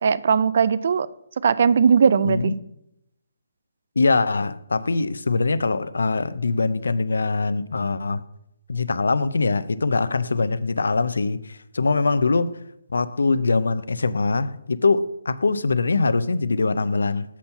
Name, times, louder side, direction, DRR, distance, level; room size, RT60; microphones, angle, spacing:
voice 1, 0.0-1.1 1.4-2.5, right 6 dB, 55° right, 0.3 m, -18 dB
voice 2, 4.0-8.2 8.7-12.5 12.9-17.2, left 3 dB, 85° left, 0.5 m, -22 dB
7.1 x 4.3 x 5.4 m
hypercardioid pair, 160°, 0 cm